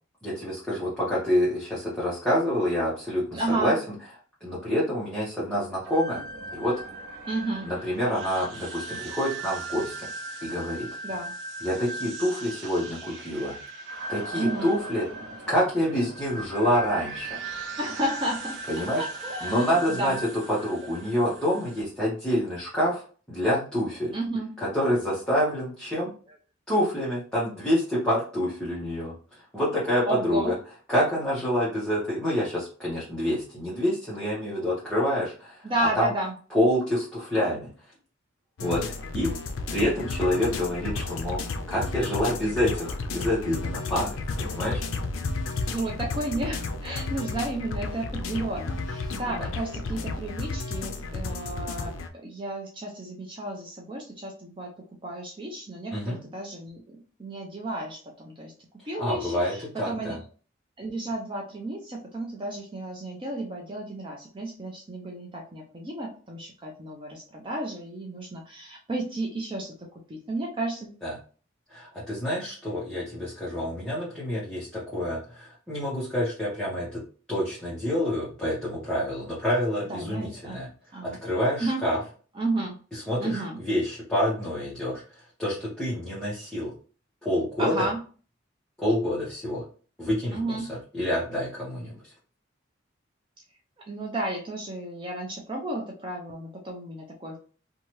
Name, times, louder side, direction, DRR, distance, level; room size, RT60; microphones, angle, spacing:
voice 1, 0.2-3.8 4.4-6.2 6.5-6.8 7.6-10.1 10.4-10.9 11.6-13.6 14.1-15.1 15.5-17.4 18.7-19.1 19.4-20.1 20.5-24.1 24.6-26.1 26.7-30.5 30.9-35.7 36.0-36.1 36.5-37.7 38.6-39.3 39.7-44.8 55.9-56.2 59.0-60.2 71.0-71.2 71.7-77.0 77.3-80.7 81.0-82.0 82.9-86.7 87.2-87.9 88.8-89.7 90.0-90.7 90.9-92.1, equal, 5° left, -9 dB, 0.9 m, -27 dB
voice 2, 3.3-3.7 7.3-7.7 11.0-11.4 14.3-14.8 17.8-18.6 19.0-20.2 24.1-24.5 30.1-30.5 35.6-36.3 45.7-51.9 52.2-54.7 55.0-58.5 58.9-60.2 60.8-69.7 70.1-71.0 79.9-80.6 80.9-81.2 81.6-81.8 82.4-82.8 83.2-83.6 87.6-88.0 90.3-90.7 93.9-97.4, right 2 dB, 25° right, 0 dB, 0.5 m, -32 dB
sound 1, 5.8-21.8, right 2 dB, 70° right, 0.5 m, -38 dB
sound 2, 38.6-52.1, left 3 dB, 80° left, 0.4 m, -32 dB
2.8 x 2.3 x 3.0 m, 0.39 s
head